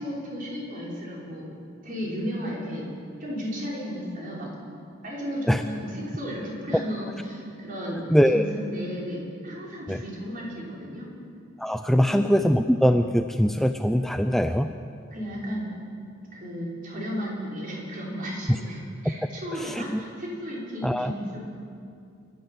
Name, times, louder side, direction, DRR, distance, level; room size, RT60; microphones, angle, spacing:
voice 1, 0.0-1.5 1.8-2.8 3.2-4.5 5.0-8.0 8.3-11.1 11.9-12.2 15.1-15.7 16.3-21.4, equal, 45° right, -5 dB, 6.1 m, -34 dB
voice 2, 8.1-8.4 9.9-10.0 11.6-14.7 19.1-19.2 19.6-20.0 20.8-21.1, equal, ahead, 7 dB, 0.5 m, -22 dB
28.5 x 12.0 x 7.6 m, 2.4 s
head